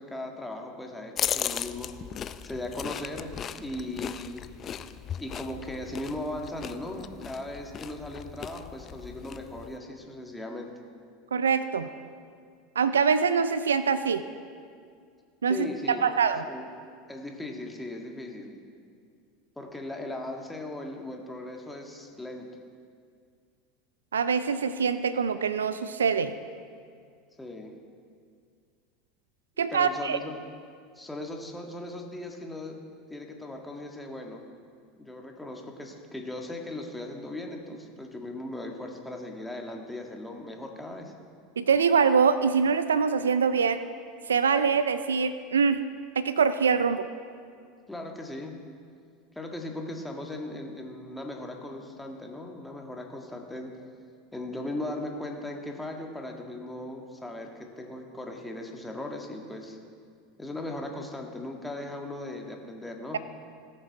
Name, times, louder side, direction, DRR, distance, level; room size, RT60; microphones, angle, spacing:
voice 1, 0.0-1.9 2.4-4.4 5.2-10.7 15.5-16.2 16.4-16.7 17.1-18.5 19.6-22.5 27.4-27.7 29.6-30.4 30.9-32.8 33.1-34.4 35.0-41.1 47.9-48.6 49.3-53.8 54.3-59.8 60.4-63.2, left 1 dB, 5° left, 2 dB, 1.6 m, -38 dB
sound 1, 1.2-9.8, left 9 dB, 35° left, 0.4 m, -37 dB
voice 2, 11.3-11.9 12.8-14.2 15.4-16.4 24.1-26.3 29.6-30.2 41.6-43.8 44.3-45.8 46.2-47.1, right 6 dB, 85° right, 13 dB, 0.4 m, -24 dB
17.5 x 6.7 x 4.7 m, 2.2 s
hypercardioid pair, 80°, 0 cm